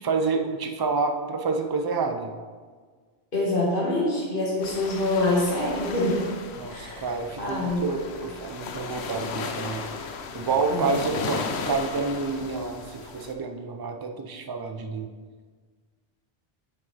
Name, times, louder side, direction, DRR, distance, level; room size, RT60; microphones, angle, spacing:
voice 1, 0.0-2.3 6.6-9.8 10.3-15.1, right 4 dB, 30° right, 5 dB, 0.5 m, -28 dB
voice 2, 3.3-6.3 6.7-7.1 7.4-7.8 10.7-11.0, left 2 dB, 55° left, -6 dB, 1.8 m, -25 dB
sound 1, 4.6-13.3, left 5 dB, 85° left, 1.0 m, -36 dB
9.1 x 6.1 x 3.3 m, 1.5 s
omnidirectional pair, 1.1 m